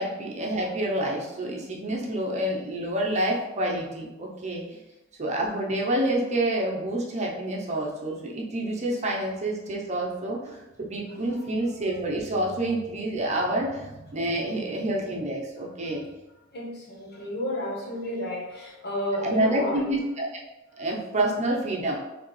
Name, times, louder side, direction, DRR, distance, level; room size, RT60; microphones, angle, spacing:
voice 1, 0.0-4.8 5.2-16.0 19.2-20.4 20.8-22.0, right 1 dB, 35° right, -2 dB, 0.8 m, -28 dB
voice 2, 16.5-19.9 21.1-21.3, left 1 dB, 50° left, -2 dB, 1.1 m, -32 dB
4.8 x 3.4 x 3.2 m, 1.0 s
head